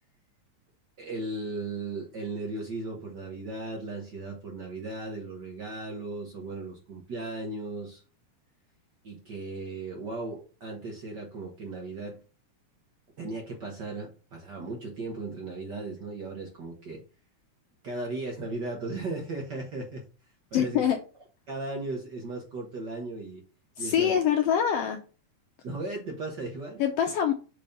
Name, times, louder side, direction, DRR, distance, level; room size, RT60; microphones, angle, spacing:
voice 1, 1.0-8.0 9.0-12.2 13.2-17.0 17.8-20.0 20.5-20.8 21.5-23.4 23.8-24.2 25.6-26.8, right 2 dB, 50° right, 0 dB, 1.3 m, -36 dB
voice 2, 20.5-21.0 23.8-25.0 26.8-27.3, left 9 dB, 75° left, 6 dB, 1.5 m, -24 dB
5.3 x 4.3 x 5.4 m, 0.36 s
omnidirectional pair, 3.3 m